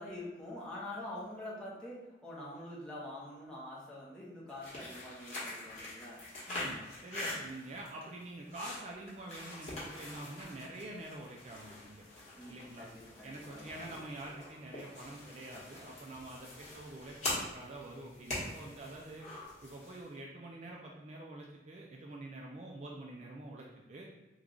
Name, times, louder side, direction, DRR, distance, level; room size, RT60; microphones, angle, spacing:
voice 1, 0.0-6.2 12.3-13.7, left 1 dB, 5° left, -7 dB, 0.8 m, -45 dB
sound 1, 4.5-20.1, left 2 dB, 40° left, 1.1 m, -44 dB
voice 2, 6.5-12.0 12.5-12.9 13.2-19.3 19.6-24.1, right 2 dB, 40° right, -1 dB, 0.3 m, -46 dB
3.1 x 2.3 x 3.7 m, 1.1 s
head